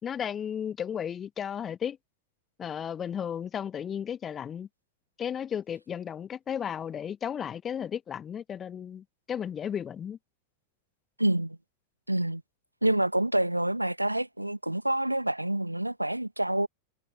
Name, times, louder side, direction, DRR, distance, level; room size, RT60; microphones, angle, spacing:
voice 1, 0.0-2.0 2.6-4.7 5.2-10.2, left 8 dB, 25° left, 1.8 m, -34 dB
voice 2, 11.2-11.6 12.1-12.4 12.8-16.7, right 1 dB, 85° right, 1.7 m, -27 dB
figure-of-eight pair, 90°, 0 cm